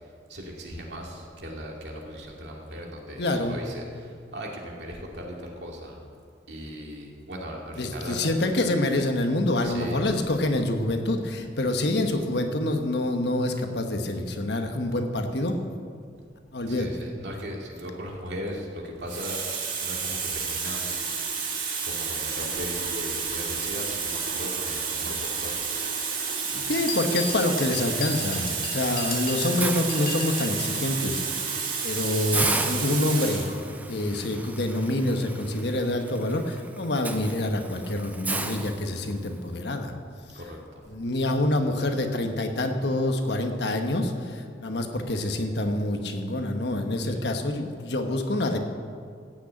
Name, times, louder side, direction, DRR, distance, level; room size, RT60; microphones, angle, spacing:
voice 1, 0.3-6.0 6.5-8.2 9.6-10.0 16.7-19.4 19.8-21.0 21.8-25.7 40.3-40.8 47.1-47.3, equal, 65° right, -1 dB, 2.4 m, -38 dB
voice 2, 3.2-3.6 7.8-15.6 16.5-16.9 26.5-31.5 31.8-33.6 33.9-39.9 40.9-48.6, left 1 dB, 65° left, 5 dB, 1.2 m, -26 dB
Water tap faucet, 18.3-18.5 19.1-33.6 34.5-34.6, right 5 dB, 50° right, 2.1 m, -30 dB
sound 1, 26.7-30.6, left 5 dB, 50° left, 2.1 m, -36 dB
Hiss, 29.6-30.7 31.2-31.4 31.7-31.8 32.3-39.4, right 2 dB, 10° right, 0.5 m, -34 dB
14.5 x 6.5 x 8.7 m, 2.2 s
head